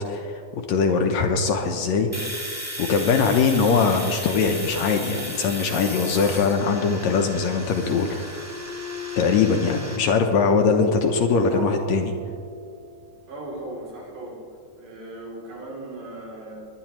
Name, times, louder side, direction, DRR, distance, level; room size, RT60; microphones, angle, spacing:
voice 1, 0.0-2.3 2.8-8.5 9.2-12.1, left 5 dB, 75° left, 4 dB, 1.8 m, -22 dB
Domestic sounds home sounds, 2.1-10.0, equal, 15° right, 0.6 m, -35 dB
sound 1, 7.4-13.1, equal, 65° right, 2.2 m, -35 dB
voice 2, 13.3-14.4 14.8-16.6, right 1 dB, 85° right, -3 dB, 4.7 m, -37 dB
21.5 x 10.5 x 3.0 m, 2.2 s
omnidirectional pair, 3.7 m